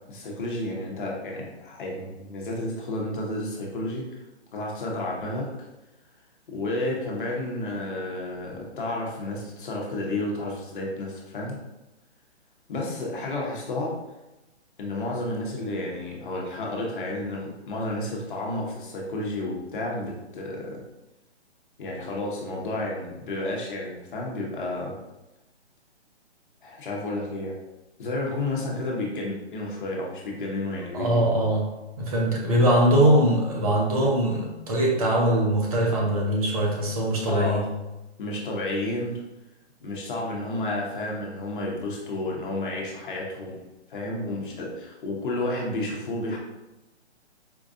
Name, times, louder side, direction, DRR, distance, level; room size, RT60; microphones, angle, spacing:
voice 1, 0.1-4.1 4.5-5.5 6.5-11.6 12.7-13.9 14.8-20.8 21.8-25.0 26.6-27.5 28.0-31.3 33.0-33.2 37.3-37.7 38.2-39.2 39.8-43.6 43.9-46.4, left 2 dB, 45° left, -2 dB, 1.0 m, -31 dB
voice 2, 30.9-31.7 32.0-37.7, right 1 dB, 35° right, -2 dB, 0.7 m, -22 dB
4.6 x 2.3 x 2.6 m, 1.0 s
hypercardioid pair, 160°, 34 cm